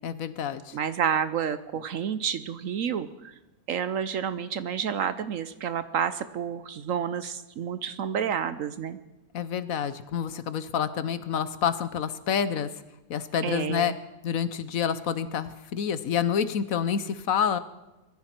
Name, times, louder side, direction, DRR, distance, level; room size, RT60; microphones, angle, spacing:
voice 1, 0.0-0.8 9.3-12.7 13.1-13.9 14.2-17.6, left 8 dB, 55° left, 13 dB, 1.0 m, -28 dB
voice 2, 0.7-3.3 3.7-9.0 13.4-14.0, right 8 dB, 65° right, 13 dB, 0.8 m, -29 dB
22.0 x 14.5 x 4.5 m, 1.0 s
omnidirectional pair, 2.1 m